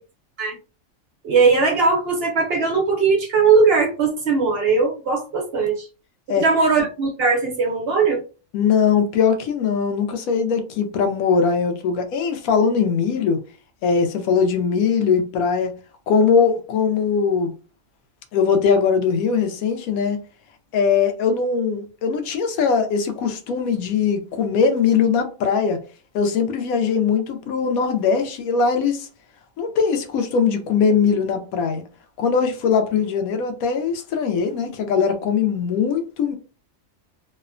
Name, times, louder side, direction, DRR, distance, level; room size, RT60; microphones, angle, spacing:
voice 1, 1.2-5.9 6.4-8.2, right 4 dB, 60° right, 0.7 m, -19 dB
voice 2, 8.5-13.4 13.8-15.7 16.1-17.5 18.3-20.2 20.7-25.8 26.1-29.1 29.6-31.8 32.2-36.4, left 6 dB, 85° left, 1.0 m, -20 dB
2.7 x 2.1 x 2.4 m
omnidirectional pair, 1.4 m